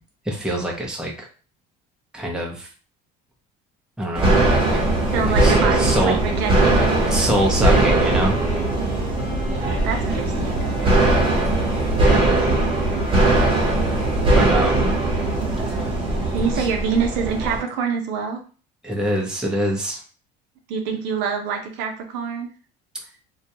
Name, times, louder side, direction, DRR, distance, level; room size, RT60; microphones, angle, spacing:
voice 1, 0.3-1.3 2.1-2.7 4.0-4.4 4.7-4.8 5.2-6.2 7.1-8.3 14.3-14.9 16.4-16.6 18.8-20.0, right 1 dB, 5° right, -1 dB, 0.6 m, -24 dB
sound 1, 4.2-17.6, right 2 dB, 30° right, 0.9 m, -20 dB
voice 2, 5.1-7.3 9.5-11.0 16.3-18.4 20.7-22.5, right 6 dB, 75° right, 4 dB, 0.6 m, -26 dB
Wind instrument woodwind instrument, 6.7-14.5, left 3 dB, 45° left, 0.9 m, -36 dB
2.3 x 2.2 x 2.8 m, 0.38 s
cardioid pair, 115°, 19 cm